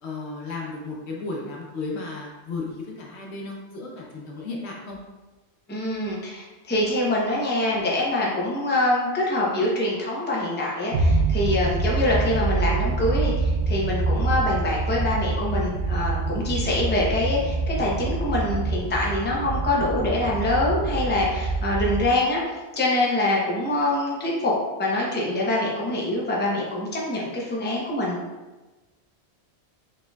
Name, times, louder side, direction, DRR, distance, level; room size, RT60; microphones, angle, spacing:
voice 1, 0.0-5.0, left 3 dB, 75° left, -2 dB, 1.1 m, -34 dB
voice 2, 5.7-22.4 22.8-24.5 24.8-28.2, left 1 dB, 10° left, -4 dB, 0.6 m, -25 dB
sound 1, 10.9-22.1, right 3 dB, 80° right, 0.9 m, -26 dB
4.4 x 3.6 x 2.3 m, 1.2 s
omnidirectional pair, 1.1 m